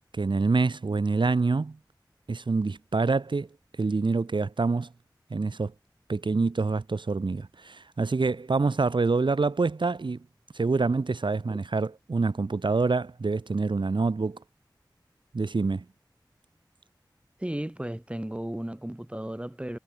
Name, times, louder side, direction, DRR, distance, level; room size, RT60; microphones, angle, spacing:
voice 1, 0.1-1.8 2.3-3.5 3.8-4.9 5.3-5.7 6.1-10.2 10.5-14.4 15.3-15.8, right 3 dB, 90° right, 1.5 m, -26 dB
voice 2, 17.4-19.8, right 1 dB, 15° right, 2.0 m, -34 dB
wide cardioid pair, 60°, 8 cm